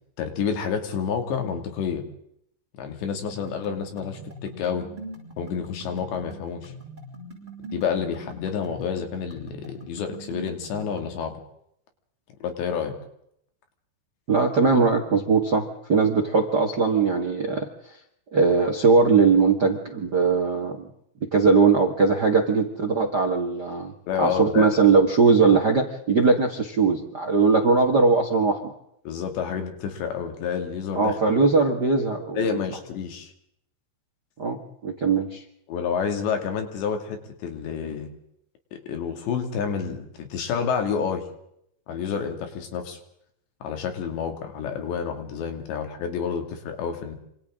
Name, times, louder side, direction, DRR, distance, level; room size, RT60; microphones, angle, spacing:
voice 1, 0.2-2.0 2.8-4.9 5.4-6.7 7.7-11.4 12.4-12.9 24.1-24.7 29.0-31.2 32.4-33.3 35.7-38.1 38.7-41.3 41.9-43.0 43.6-47.2, left 7 dB, 85° left, 5 dB, 4.8 m, -29 dB
sound 1, 3.1-11.1, right 1 dB, 10° right, 7.2 m, -42 dB
voice 2, 14.3-17.7 18.3-20.8 21.3-23.9 24.2-28.7 30.9-32.6 34.4-35.4, right 4 dB, 50° right, 4 dB, 1.2 m, -20 dB
26.5 x 26.5 x 3.8 m, 0.73 s
omnidirectional pair, 5.0 m